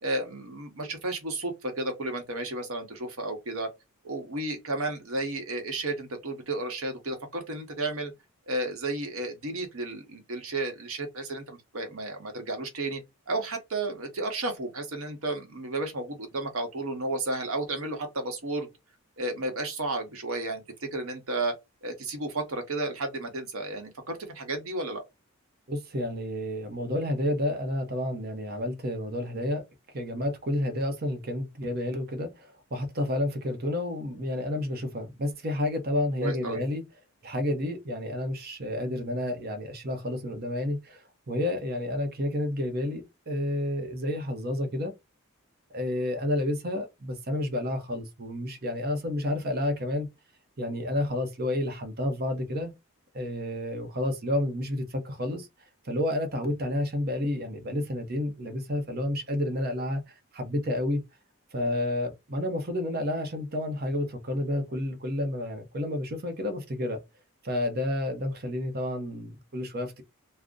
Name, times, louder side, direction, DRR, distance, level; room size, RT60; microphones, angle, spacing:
voice 1, 0.0-3.7 4.0-8.1 8.5-13.0 13.3-18.7 19.2-21.5 21.8-25.0 36.2-36.6, right 2 dB, 70° right, 0.9 m, -32 dB
voice 2, 25.7-29.6 29.9-36.8 37.2-44.9 45.7-50.1 50.6-52.7 53.1-55.5 55.8-61.0 61.5-67.0 67.4-70.0, left 1 dB, 45° right, 0.7 m, -30 dB
2.5 x 2.0 x 3.6 m
head